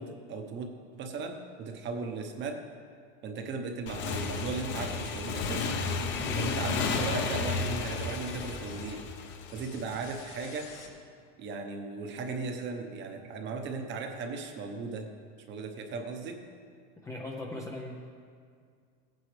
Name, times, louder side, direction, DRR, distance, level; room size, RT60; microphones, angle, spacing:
voice 1, 0.0-2.6 3.2-5.7 6.3-9.0 9.5-10.7 11.4-15.1 15.5-16.5, right 4 dB, 30° right, 5 dB, 1.0 m, -37 dB
Motorcycle / Engine, 3.9-10.2, left 4 dB, 35° left, 0.8 m, -32 dB
sound 1, 4.0-10.9, left 5 dB, 70° left, 1.7 m, -48 dB
voice 2, 6.2-6.7 17.0-18.0, left 2 dB, 10° left, -1 dB, 0.4 m, -39 dB
16.0 x 9.2 x 3.3 m, 2.2 s
supercardioid pair, 155°, 35 cm